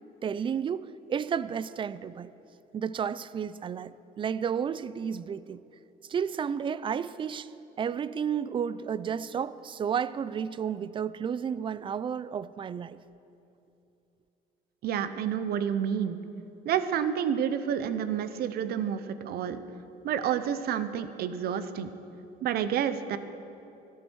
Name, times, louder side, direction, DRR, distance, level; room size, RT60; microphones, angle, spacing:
voice 1, 0.2-2.3 2.7-5.6 6.1-7.5 7.8-13.0, right 7 dB, 30° right, 17 dB, 0.3 m, -32 dB
voice 2, 14.8-16.2 16.7-19.6 20.0-21.9 22.4-23.2, right 8 dB, 70° right, 12 dB, 0.7 m, -29 dB
13.0 x 11.0 x 4.7 m, 2.8 s
cardioid pair, 110°, 17 cm